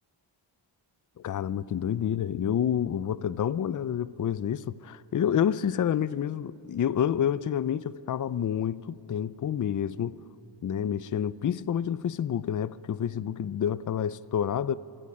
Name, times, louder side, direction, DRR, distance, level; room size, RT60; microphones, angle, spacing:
voice 1, 1.2-10.2 10.6-14.8, left 9 dB, 40° left, 0.5 m, -28 dB
27.0 x 20.0 x 9.8 m
wide cardioid pair, 145°, 47 cm